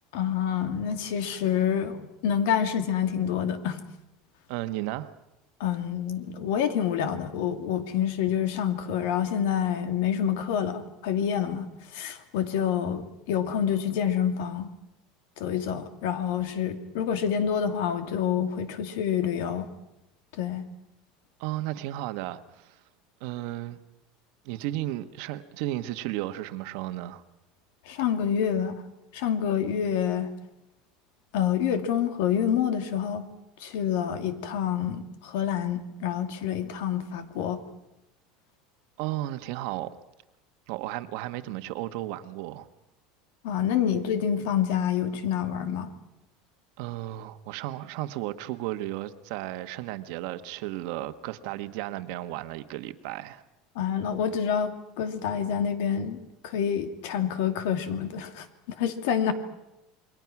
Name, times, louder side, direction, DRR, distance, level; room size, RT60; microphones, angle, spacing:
voice 1, 0.1-3.8 5.6-14.7 15.4-19.7 20.3-20.6 27.9-28.7 29.1-30.3 31.3-33.2 33.6-37.6 43.4-45.9 53.8-56.2 56.4-58.5 58.8-59.3, left 8 dB, 75° left, 2.6 m, -27 dB
voice 2, 4.5-5.1 21.4-22.8 23.2-23.8 24.4-27.2 39.0-39.9 40.7-42.7 46.8-53.4, right 15 dB, 65° right, 1.3 m, -34 dB
28.5 x 22.5 x 6.1 m
cardioid pair, 160°, 0 cm